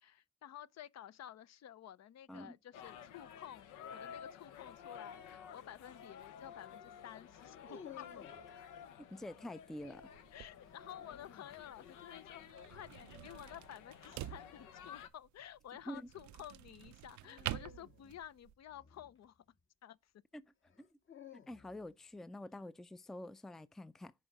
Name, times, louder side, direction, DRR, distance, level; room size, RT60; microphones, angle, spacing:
voice 1, 0.0-8.3 10.3-19.4 19.8-20.1, left 11 dB, 60° left, 0.7 m, -52 dB
sound 1, 2.7-15.1, left 8 dB, 90° left, 1.0 m, -53 dB
sound 2, 5.4-5.7 7.3-8.5 10.6-11.6 14.1-14.4 17.2-19.6 20.7-22.0, left 7 dB, 45° left, 1.6 m, -56 dB
voice 2, 9.1-10.0 15.9-16.0 20.3-20.4 20.8-20.9 21.5-24.1, left 1 dB, ahead, 0.4 m, -47 dB
sound 3, 9.8-18.5, right 15 dB, 75° right, 0.5 m, -48 dB
11.0 x 4.9 x 4.0 m
cardioid pair, 90°, 30 cm